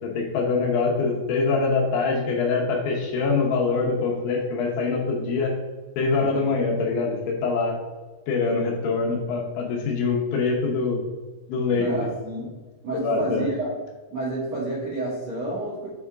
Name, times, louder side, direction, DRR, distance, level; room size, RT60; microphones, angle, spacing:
voice 1, 0.0-5.5 6.0-7.8 8.3-11.0 11.5-11.9 12.9-13.5, left 4 dB, 75° left, -1 dB, 3.1 m, -24 dB
voice 2, 11.7-12.5 12.8-13.7 14.1-15.9, right 2 dB, 55° right, -8 dB, 1.9 m, -29 dB
8.2 x 5.3 x 3.5 m, 1.3 s
omnidirectional pair, 5.9 m